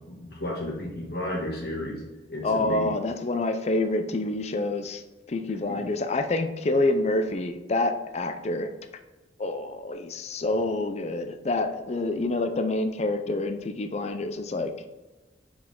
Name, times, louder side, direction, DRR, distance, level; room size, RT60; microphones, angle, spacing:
voice 1, 0.1-2.0 2.3-2.9 5.7-5.8, left 1 dB, 60° left, -3 dB, 2.0 m, -33 dB
voice 2, 2.4-5.0 5.3-8.7 9.4-14.7, left 2 dB, 40° left, 8 dB, 0.5 m, -27 dB
6.1 x 4.8 x 3.6 m, 1.1 s
head